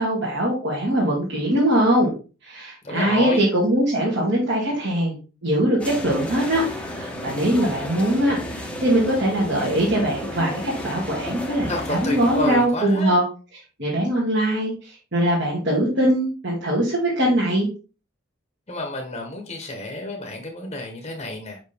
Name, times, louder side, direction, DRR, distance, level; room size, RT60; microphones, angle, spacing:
voice 1, 0.0-2.1 2.4-5.1 5.4-13.2 13.8-17.7, right 1 dB, 55° right, -6 dB, 2.0 m, -22 dB
voice 2, 2.8-3.4 11.7-13.2 18.7-21.6, left 2 dB, 25° left, 2 dB, 1.1 m, -30 dB
sound 1, 5.8-12.7, left 1 dB, 5° left, 0.9 m, -32 dB
5.7 x 5.0 x 3.4 m, 0.33 s
head